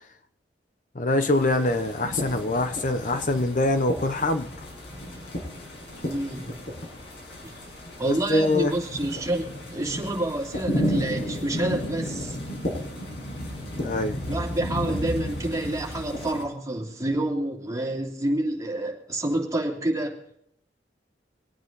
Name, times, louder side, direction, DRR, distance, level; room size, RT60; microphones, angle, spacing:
voice 1, 0.9-4.7 8.0-8.7 13.8-14.2, left 2 dB, 50° left, 0.9 m, -24 dB
sound 1, 1.2-16.4, equal, 75° left, 6.5 m, -33 dB
voice 2, 6.0-6.6 8.0-12.4 14.3-20.1, right 1 dB, 20° right, 3.1 m, -28 dB
25.5 x 9.3 x 4.0 m
head